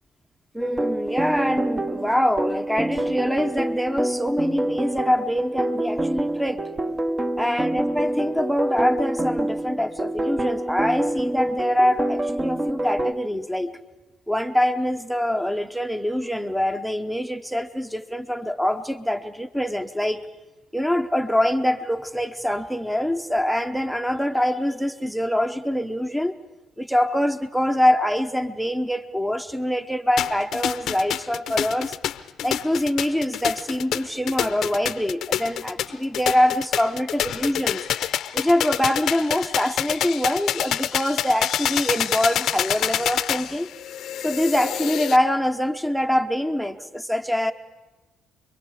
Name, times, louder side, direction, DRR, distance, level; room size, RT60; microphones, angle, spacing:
voice 1, 0.5-6.6 7.4-13.7 14.3-20.2 20.7-26.3 26.8-32.0 32.4-37.9 38.3-43.7 44.2-47.5, left 1 dB, ahead, 10 dB, 0.9 m, -24 dB
sound 1, 0.6-13.1, right 1 dB, 25° right, 1.1 m, -26 dB
sound 2, 30.2-45.2, left 11 dB, 65° left, 0.7 m, -27 dB
29.5 x 22.5 x 5.0 m, 1.1 s
supercardioid pair, 65°, 0 cm